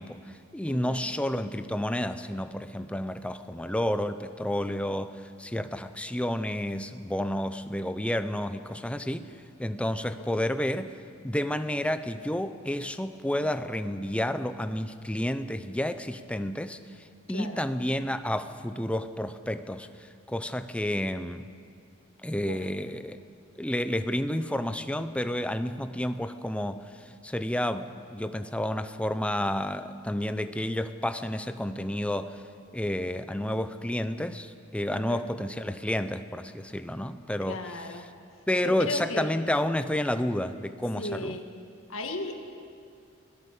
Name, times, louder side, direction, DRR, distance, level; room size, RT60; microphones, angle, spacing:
voice 1, 0.0-9.3 9.6-10.9 11.2-16.8 17.3-21.5 22.2-23.2 23.6-32.4 32.7-38.1 38.5-41.4, left 1 dB, 5° left, 10 dB, 0.7 m, -30 dB
voice 2, 0.7-1.0 17.3-17.6 22.4-22.6 34.9-35.3 37.5-38.1 38.6-39.3 41.0-41.4 41.9-42.4, left 2 dB, 80° left, 4 dB, 1.9 m, -35 dB
23.5 x 17.5 x 6.8 m, 2.3 s
head